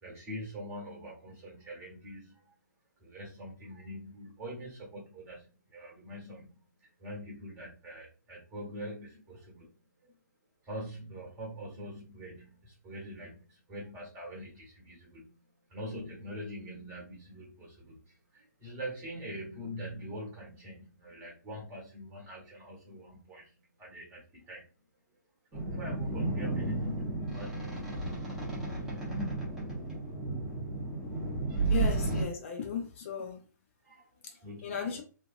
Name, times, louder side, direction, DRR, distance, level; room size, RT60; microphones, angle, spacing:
voice 1, 0.0-2.5 3.0-6.5 7.0-9.7 10.0-10.1 10.6-15.3 15.7-23.5 23.8-24.7 25.5-28.1 33.8-35.0, equal, 20° right, -2 dB, 1.4 m, -43 dB
sound 1, 25.5-32.2, right 3 dB, 5° right, 1.1 m, -33 dB
voice 2, 31.7-33.5 34.2-35.0, left 7 dB, 40° left, 3 dB, 0.6 m, -36 dB
3.2 x 2.5 x 2.5 m, 0.36 s
hypercardioid pair, 140°, 10 cm